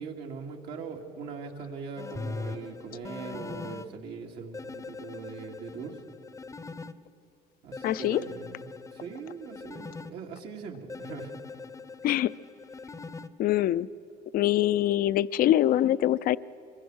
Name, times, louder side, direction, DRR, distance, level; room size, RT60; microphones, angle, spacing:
voice 1, 0.0-6.0 7.6-8.7 8.9-11.4, right 5 dB, 80° right, 1 dB, 2.5 m, -41 dB
sound 1, 2.0-3.9 4.5-6.9 7.7-10.1 10.9-13.3, left 4 dB, 20° left, 0.7 m, -41 dB
voice 2, 7.8-8.2 12.0-12.3 13.4-13.9 14.3-16.4, left 13 dB, 60° left, 16 dB, 0.4 m, -24 dB
25.0 x 22.5 x 6.3 m, 2.8 s
cardioid pair, 110°, 17 cm